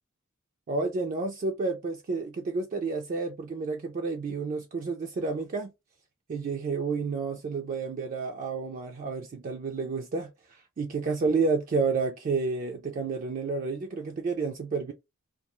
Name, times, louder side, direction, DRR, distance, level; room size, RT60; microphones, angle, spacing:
voice 1, 0.7-5.7 6.3-14.9, right 4 dB, 40° right, 0.3 m, -30 dB
2.3 x 2.1 x 2.9 m
head